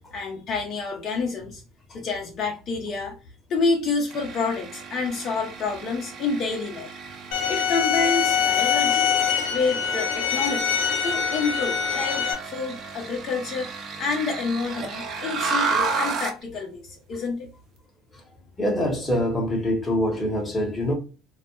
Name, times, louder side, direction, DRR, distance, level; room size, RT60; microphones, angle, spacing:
voice 1, 0.1-1.6 1.9-3.2 3.5-6.9 7.5-9.1 9.5-10.8 11.0-13.7 14.0-17.5, left 4 dB, 45° left, 0.6 m, -28 dB
sound 1, 4.1-16.4, right 4 dB, 40° right, 0.6 m, -33 dB
sound 2, 7.3-12.3, left 7 dB, 75° left, 0.8 m, -24 dB
voice 2, 18.6-20.9, equal, 15° left, 0.9 m, -24 dB
2.3 x 2.0 x 2.9 m
cardioid pair, 135°, 0 cm